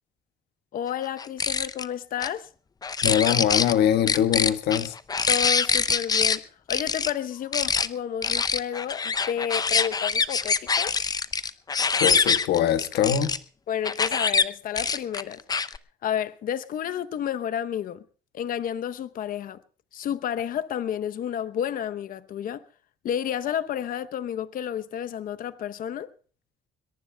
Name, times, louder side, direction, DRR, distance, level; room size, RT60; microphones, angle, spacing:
voice 1, 0.7-2.5 5.3-6.4 6.7-11.0 13.7-15.4 16.0-18.0 18.3-19.6 19.9-22.6 23.0-26.1, left 9 dB, 55° left, 0.9 m, -31 dB
sound 1, 1.2-1.9 2.2-2.3 2.8-3.7 4.1-6.4 6.7-7.1 7.5-7.9 8.2-13.4 13.8-14.4 14.8-15.8, left 5 dB, 25° left, 0.6 m, -24 dB
voice 2, 3.0-4.9 12.0-13.3, left 9 dB, 75° left, 1.5 m, -23 dB
22.0 x 22.0 x 2.3 m
cardioid pair, 110°, 17 cm